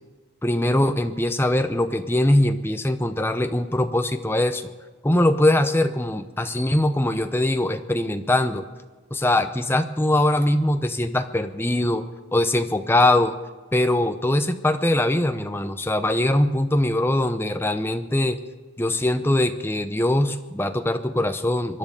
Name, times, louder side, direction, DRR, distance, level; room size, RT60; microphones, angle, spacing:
voice 1, 0.4-4.7 5.0-8.7 9.1-12.1 12.3-13.3 13.7-18.4 18.8-21.8, left 1 dB, 10° left, 8 dB, 0.7 m, -22 dB
24.5 x 10.5 x 5.3 m, 1.3 s
head